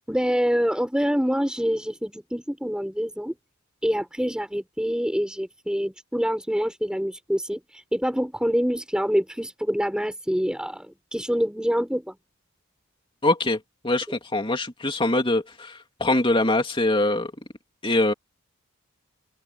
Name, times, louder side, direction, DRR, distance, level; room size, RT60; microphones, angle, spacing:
voice 1, 0.1-3.3 3.8-12.2, equal, 5° right, 6.3 m, -26 dB
voice 2, 13.2-17.3 17.8-18.1, left 2 dB, 25° left, 2.7 m, -23 dB
open air
head